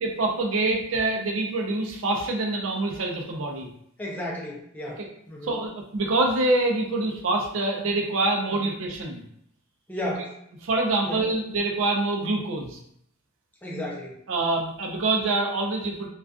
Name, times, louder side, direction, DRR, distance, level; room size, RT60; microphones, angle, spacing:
voice 1, 0.0-3.7 5.0-5.1 5.4-9.2 10.6-12.8 14.3-16.1, right 2 dB, 65° right, 1 dB, 0.5 m, -25 dB
voice 2, 4.0-5.6 8.5-8.7 9.9-10.4 11.0-11.2 13.6-14.2, left 1 dB, 10° left, -4 dB, 0.5 m, -34 dB
2.4 x 2.3 x 2.3 m, 0.72 s
head